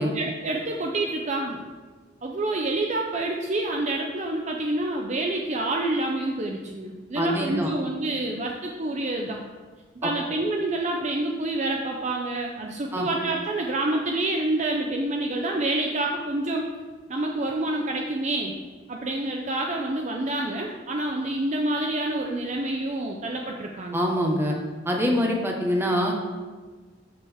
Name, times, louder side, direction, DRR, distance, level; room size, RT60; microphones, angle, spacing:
voice 1, 0.1-1.6 2.2-9.4 10.0-16.7 17.1-18.5 18.9-24.0, right 2 dB, 35° right, 1 dB, 0.6 m, -27 dB
voice 2, 7.1-7.7 10.0-10.1 12.9-13.1 23.9-24.6 24.8-26.2, equal, 10° right, 0 dB, 1.2 m, -24 dB
12.5 x 5.4 x 3.6 m, 1.4 s
head